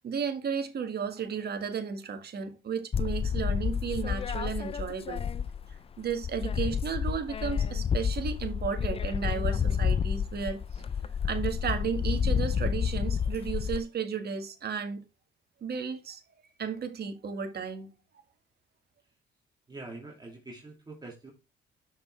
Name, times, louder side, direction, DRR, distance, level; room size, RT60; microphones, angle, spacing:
voice 1, 0.0-5.2 6.0-10.6 11.2-15.0 15.6-16.2 16.6-17.9, right 6 dB, 55° right, 1.7 m, -33 dB
sound 1, 2.9-5.8 6.1-13.8, left 7 dB, 30° left, 0.4 m, -30 dB
voice 2, 19.7-21.3, right 2 dB, 20° right, 2.5 m, -44 dB
6.7 x 5.7 x 3.2 m
cardioid pair, 90°, 20 cm